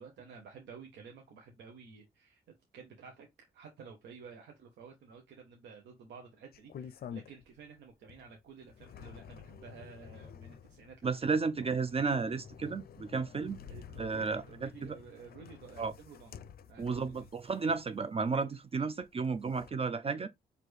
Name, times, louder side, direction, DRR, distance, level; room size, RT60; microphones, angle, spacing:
voice 1, 0.0-2.4 2.7-3.3 3.5-11.5 12.6-12.7 13.7-16.4 16.7-17.3 20.0-20.3, right 5 dB, 85° right, 0.9 m, -52 dB
sound 1, 6.5-7.7 8.1-18.3 19.0-19.7, left 8 dB, 60° left, 0.5 m, -50 dB
voice 2, 11.0-13.6 14.0-15.0 15.8-15.9 16.8-20.3, right 4 dB, 35° right, 0.4 m, -33 dB
4.4 x 2.6 x 3.2 m
supercardioid pair, 55°, 18 cm